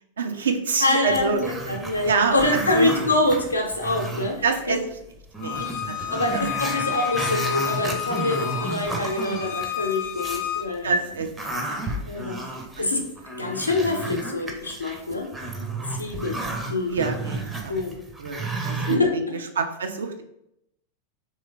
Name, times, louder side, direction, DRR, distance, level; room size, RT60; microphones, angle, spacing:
voice 1, 0.2-1.4 2.0-2.9 4.4-4.8 5.4-6.4 6.9-7.0 8.4-8.5 10.8-11.3 11.8-12.2 12.8-12.9 16.9-17.7 18.2-18.4 18.6-19.2 19.5-20.2, right 5 dB, 65° right, 5 dB, 0.4 m, -26 dB
voice 2, 0.8-4.8 5.6-5.7 6.1-10.9 12.1-12.4 12.8-13.0 13.4-15.3 15.9-16.4 16.7-17.0 17.7-18.0 18.9-19.1, left 2 dB, 80° left, 2 dB, 0.5 m, -25 dB
Growling, 1.1-4.6 4.9-5.0 5.3-10.5 10.9-19.0, right 2 dB, 10° right, 0.5 m, -32 dB
Bowed string instrument, 5.4-10.7, left 11 dB, 40° left, 0.5 m, -30 dB
3.1 x 3.0 x 2.3 m, 0.80 s
figure-of-eight pair, 90°, 0 cm